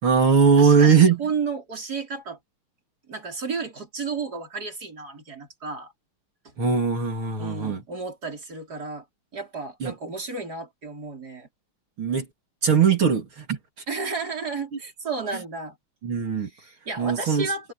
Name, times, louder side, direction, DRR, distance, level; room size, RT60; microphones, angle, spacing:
voice 1, 0.0-1.2 6.6-7.8 9.8-9.9 12.0-12.3 12.6-13.6 16.0-16.5 17.0-17.5, right 6 dB, 70° right, 3.9 m, -20 dB
voice 2, 0.6-2.4 3.1-5.9 6.4-6.5 7.4-9.0 9.3-11.5 13.9-15.8 16.4-17.7, right 4 dB, 45° right, 5.1 m, -32 dB
omnidirectional pair, 2.4 m